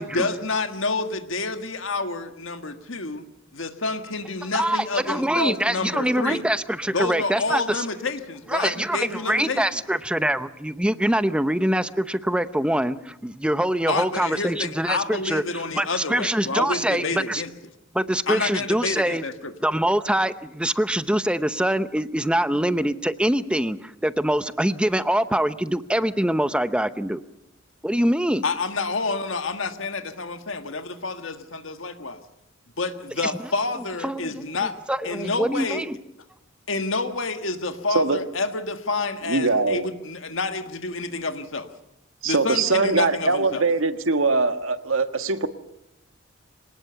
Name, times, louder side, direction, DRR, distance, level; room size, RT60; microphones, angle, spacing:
voice 1, 0.0-3.2 3.5-6.4 6.9-9.6 13.9-17.5 18.3-19.5 28.4-32.2 32.8-34.7 35.0-35.8 36.7-41.7 42.2-43.6, left 3 dB, 70° left, 8 dB, 1.6 m, -28 dB
voice 2, 4.5-7.9 8.5-15.4 15.7-17.4 17.9-19.2 19.6-27.2 27.8-28.4 33.2-33.3 34.0-34.3 34.9-36.0, right 1 dB, 5° right, 13 dB, 0.7 m, -24 dB
voice 3, 39.3-39.9 42.2-45.5, right 3 dB, 85° right, 9 dB, 1.6 m, -22 dB
24.5 x 19.0 x 6.9 m, 0.84 s
head